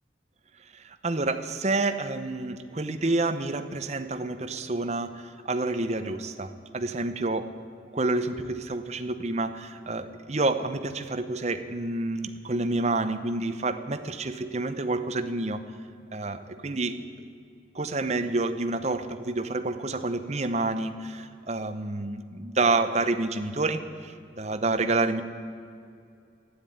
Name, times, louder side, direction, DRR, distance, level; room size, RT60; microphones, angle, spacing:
voice 1, 0.7-7.4 7.9-15.6 16.1-17.3 17.7-25.2, right 2 dB, 35° right, 9 dB, 0.7 m, -29 dB
12.5 x 9.8 x 9.4 m, 2.4 s
head